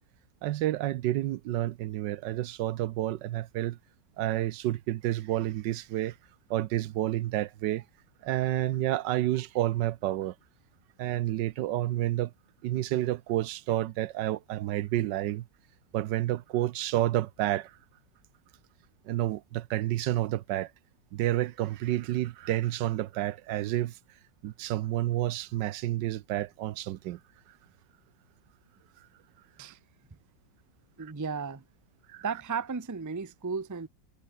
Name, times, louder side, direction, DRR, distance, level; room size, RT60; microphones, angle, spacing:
voice 1, 0.4-3.8 4.2-6.1 6.5-7.8 8.2-10.3 11.0-12.3 12.6-15.4 15.9-17.7 19.1-20.7 21.1-23.9 24.4-27.2 32.1-32.2, right 14 dB, 80° right, 1.3 m, -29 dB
voice 2, 31.0-31.6 32.2-33.9, right 5 dB, 20° right, 0.5 m, -34 dB
omnidirectional pair, 1.9 m